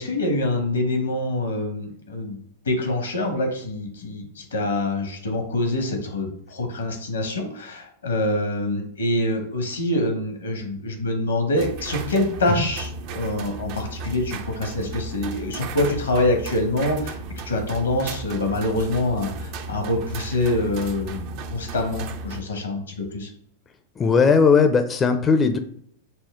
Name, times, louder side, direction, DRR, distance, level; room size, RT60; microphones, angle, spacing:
voice 1, 0.0-17.2 17.4-23.3, left 1 dB, 90° left, 3 dB, 1.1 m, -25 dB
sound 1, 11.6-22.4, right 3 dB, 50° right, 0.5 m, -35 dB
voice 2, 24.0-25.6, left 5 dB, 25° left, 8 dB, 0.4 m, -18 dB
4.3 x 2.1 x 3.6 m, 0.66 s
hypercardioid pair, 100°, 0 cm